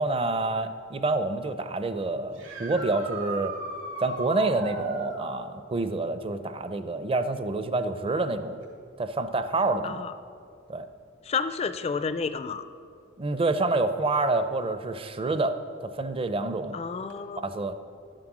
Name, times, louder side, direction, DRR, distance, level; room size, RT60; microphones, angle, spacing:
voice 1, 0.0-3.5 4.0-8.6 9.0-10.0 10.7-10.9 13.2-16.8 17.4-17.7, right 2 dB, 30° right, 10 dB, 0.5 m, -27 dB
sound 1, 2.3-5.3 8.6-8.7 10.8-10.9 17.1-17.2, right 2 dB, 75° right, 2.2 m, -36 dB
voice 2, 9.8-10.1 11.2-12.7 16.7-17.5, left 5 dB, 30° left, 11 dB, 0.4 m, -30 dB
11.5 x 7.5 x 6.1 m, 2.3 s
head